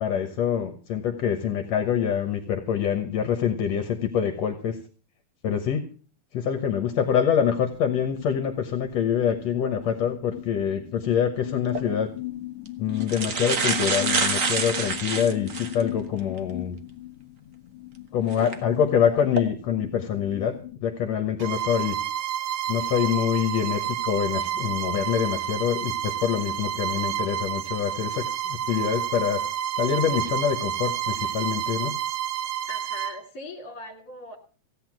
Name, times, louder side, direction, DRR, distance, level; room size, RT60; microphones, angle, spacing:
voice 1, 0.0-4.8 5.4-5.8 6.3-12.1 12.8-16.8 18.1-20.6 20.8-22.0 22.7-29.4 29.8-31.9, left 8 dB, 70° left, 7 dB, 2.2 m, -25 dB
sound 1, 6.9-20.8, left 16 dB, 85° left, 2.2 m, -39 dB
sound 2, 11.6-11.8 12.7-12.8 13.0-15.8 16.4-16.5 18.3-18.5 19.1-19.4, right 4 dB, 45° right, 1.0 m, -26 dB
Bowed string instrument, 21.4-33.2, right 10 dB, 70° right, 1.2 m, -30 dB
voice 2, 32.7-34.4, left 3 dB, 30° left, 3 dB, 3.2 m, -40 dB
16.0 x 9.9 x 6.0 m, 0.39 s
omnidirectional pair, 3.3 m